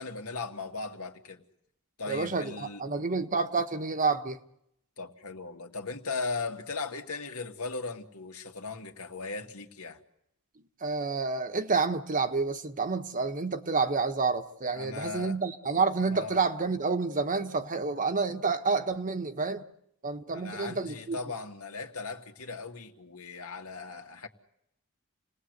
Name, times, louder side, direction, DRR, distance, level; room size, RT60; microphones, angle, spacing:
voice 1, 0.0-1.4 2.0-2.8 5.0-10.0 14.7-15.4 16.1-16.4 20.3-24.3, left 4 dB, 75° left, 2.2 m, -38 dB
voice 2, 2.1-4.4 10.8-19.6 20.0-21.2, right 4 dB, 35° right, 1.2 m, -29 dB
29.0 x 19.5 x 8.1 m
head